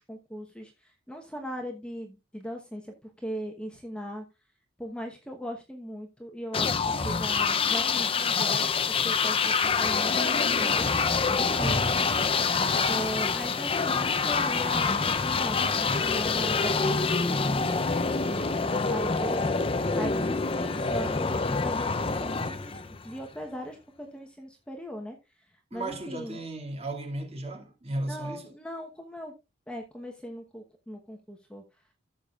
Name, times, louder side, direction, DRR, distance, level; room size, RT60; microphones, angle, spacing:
voice 1, 0.1-4.2 4.8-10.9 11.3-11.9 12.9-17.6 18.3-19.6 20.0-20.3 20.6-22.8 23.0-25.2 25.7-26.4 28.0-29.3 29.7-31.6, equal, 5° left, 1.1 m, -39 dB
sound 1, 6.5-23.3, left 4 dB, 30° left, 0.6 m, -26 dB
voice 2, 11.6-12.0 20.4-20.5 25.7-28.5, right 1 dB, 35° right, 2.2 m, -35 dB
14.5 x 6.8 x 2.4 m
head